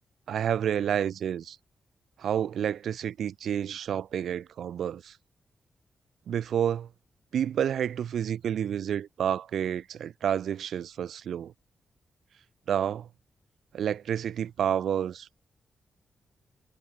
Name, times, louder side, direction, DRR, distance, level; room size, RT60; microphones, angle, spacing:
voice 1, 0.3-1.6 2.2-5.2 6.3-6.9 7.3-11.5 12.7-13.1 13.7-15.4, right 9 dB, 85° right, 3.3 m, -29 dB
wide cardioid pair, 150°, 0 cm